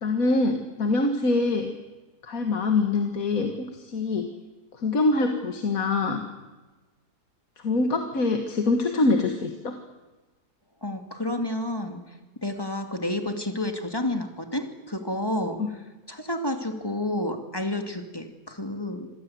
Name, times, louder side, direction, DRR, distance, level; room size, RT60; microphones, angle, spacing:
voice 1, 0.0-1.7 2.2-4.3 4.8-6.2 7.6-9.8 15.6-15.7, left 3 dB, 60° left, 6 dB, 2.1 m, -24 dB
voice 2, 10.8-12.0 12.4-15.6 16.1-19.1, left 1 dB, 15° left, 6 dB, 2.4 m, -30 dB
26.5 x 16.5 x 9.5 m, 1.2 s
omnidirectional pair, 1.7 m